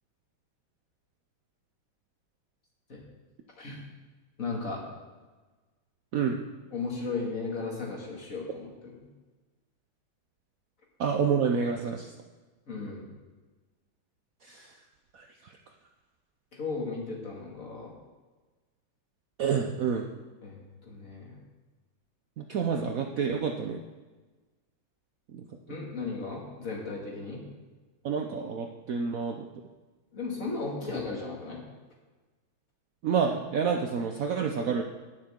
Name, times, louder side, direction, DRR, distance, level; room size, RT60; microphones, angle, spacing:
voice 1, 4.4-4.8 6.7-8.9 12.7-13.1 16.5-17.9 20.4-21.4 25.7-27.4 30.1-31.6, left 4 dB, 40° left, -2 dB, 2.4 m, -35 dB
voice 2, 11.0-12.1 14.4-14.8 15.1-15.6 19.4-20.1 22.4-23.8 25.3-25.5 28.0-29.5 33.0-34.8, right 6 dB, 85° right, 3 dB, 0.7 m, -29 dB
18.0 x 6.6 x 3.7 m, 1.3 s
omnidirectional pair, 2.3 m